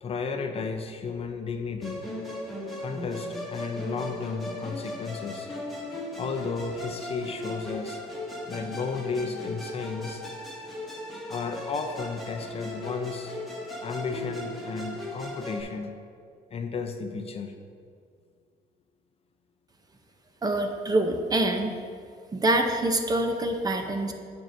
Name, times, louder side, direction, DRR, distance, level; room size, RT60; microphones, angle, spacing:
voice 1, 0.0-2.1 2.8-5.5 6.2-8.0 8.3-10.3 11.3-13.3 13.8-15.9 16.5-17.5, left 4 dB, 35° left, 6 dB, 0.6 m, -33 dB
Musical instrument, 1.8-15.6, left 1 dB, ahead, 1.4 m, -37 dB
voice 2, 20.4-21.7 22.3-24.1, right 1 dB, 20° right, 4 dB, 0.7 m, -25 dB
9.0 x 7.7 x 2.6 m, 2.2 s
cardioid pair, 110°, 17 cm